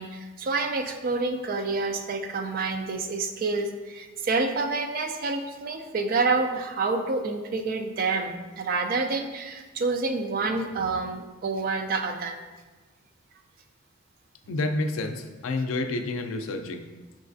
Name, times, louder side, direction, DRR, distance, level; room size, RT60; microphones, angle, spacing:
voice 1, 0.0-12.4, right 3 dB, 45° right, 5 dB, 0.3 m, -28 dB
voice 2, 14.5-16.9, left 2 dB, 85° left, 7 dB, 0.4 m, -29 dB
5.2 x 3.1 x 2.5 m, 1.3 s
head